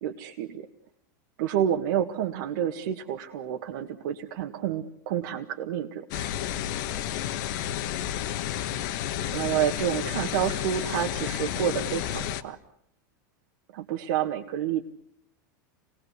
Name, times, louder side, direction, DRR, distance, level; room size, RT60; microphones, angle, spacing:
voice 1, 0.0-0.7 1.4-6.3 9.3-12.6 13.7-14.8, right 10 dB, 70° right, 3 dB, 1.7 m, -29 dB
sound 1, 6.1-12.4, left 11 dB, 65° left, 1.5 m, -31 dB
28.0 x 20.0 x 8.2 m, 0.74 s
hypercardioid pair, 115°, 11 cm